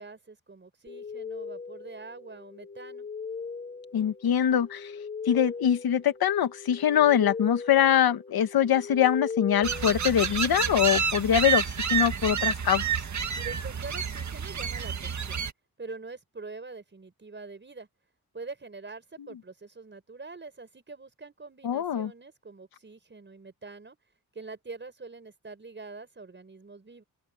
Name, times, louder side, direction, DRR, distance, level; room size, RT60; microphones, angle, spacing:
voice 1, 0.0-3.1 13.3-15.4 15.8-17.9 18.3-24.0 24.3-27.0, right 3 dB, 30° right, 5.7 m, -44 dB
sound 1, 0.9-10.6, left 5 dB, 25° left, 1.1 m, -39 dB
voice 2, 3.9-4.9 5.2-12.8 21.6-22.1, left 10 dB, 80° left, 1.6 m, -23 dB
sound 2, 9.6-15.5, right 6 dB, 50° right, 1.9 m, -29 dB
open air
cardioid pair, 85°, 36 cm